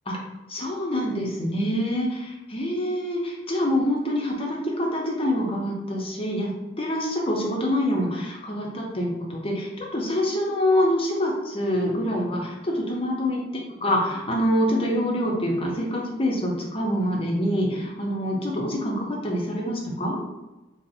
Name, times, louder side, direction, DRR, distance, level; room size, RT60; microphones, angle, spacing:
voice 1, 0.5-6.5 6.8-13.4 13.8-20.2, equal, 30° left, -2 dB, 0.6 m, -25 dB
2.5 x 2.0 x 3.9 m, 1.1 s
head